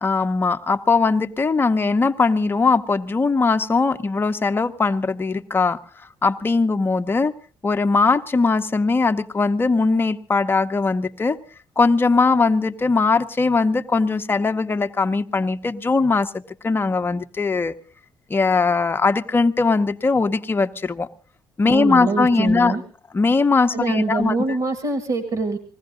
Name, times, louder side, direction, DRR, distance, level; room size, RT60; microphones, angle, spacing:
voice 1, 0.0-5.8 6.2-7.3 7.6-11.4 11.8-17.7 18.3-21.1 21.6-22.8 23.1-24.4, left 4 dB, 25° left, 7 dB, 0.9 m, -20 dB
voice 2, 21.6-22.8 23.7-25.6, right 3 dB, 50° right, 8 dB, 2.2 m, -24 dB
21.0 x 15.5 x 3.8 m, 0.38 s
cardioid pair, 125°, 9 cm